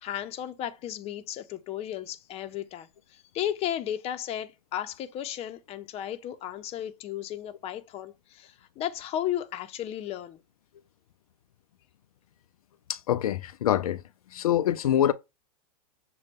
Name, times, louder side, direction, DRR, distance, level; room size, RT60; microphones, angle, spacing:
voice 1, 0.0-10.4, left 11 dB, 35° left, 0.7 m, -34 dB
voice 2, 12.9-14.0 14.3-15.1, left 11 dB, 85° left, 0.4 m, -25 dB
6.5 x 2.3 x 3.4 m
hypercardioid pair, 110°, 18 cm